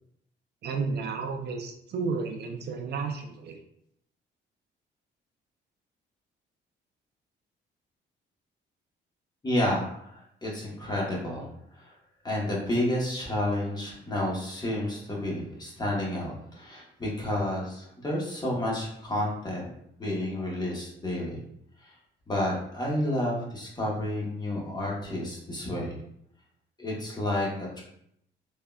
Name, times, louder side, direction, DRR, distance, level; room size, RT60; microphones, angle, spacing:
voice 1, 0.6-3.6, right 4 dB, 55° right, 3 dB, 0.4 m, -32 dB
voice 2, 9.4-11.5 11.7-11.9 12.2-19.7 20.0-21.4 21.8-21.9 22.3-26.0 26.8-27.5, left 1 dB, 20° left, -3 dB, 1.0 m, -30 dB
3.5 x 2.1 x 2.3 m, 0.72 s
cardioid pair, 90°, 20 cm